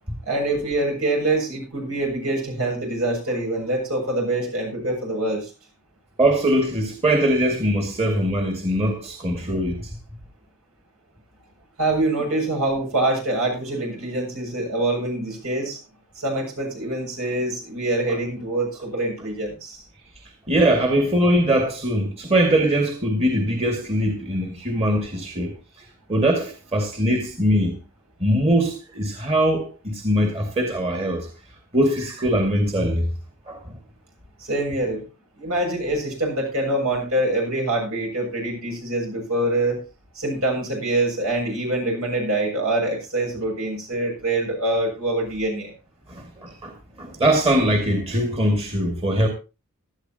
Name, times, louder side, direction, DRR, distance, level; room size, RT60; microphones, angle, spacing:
voice 1, 0.3-5.5 11.8-15.8 16.2-19.8 34.4-35.1 35.4-39.8 40.1-45.7, right 2 dB, 75° right, 7.3 m, -25 dB
voice 2, 6.2-9.9 20.5-25.6 26.1-27.8 28.2-31.3 31.7-33.1 33.5-33.7 46.1-46.7 47.0-49.3, right 1 dB, 25° right, 2.3 m, -21 dB
17.0 x 12.5 x 2.9 m
head